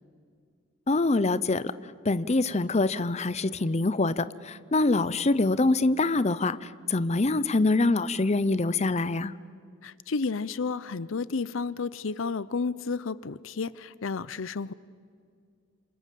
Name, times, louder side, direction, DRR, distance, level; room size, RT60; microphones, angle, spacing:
voice 1, 0.9-1.7 2.0-6.6 6.9-9.3, left 2 dB, 35° left, 15 dB, 0.6 m, -25 dB
voice 2, 9.8-14.7, left 4 dB, 70° left, 18 dB, 0.6 m, -31 dB
27.5 x 26.5 x 7.6 m, 2.2 s
head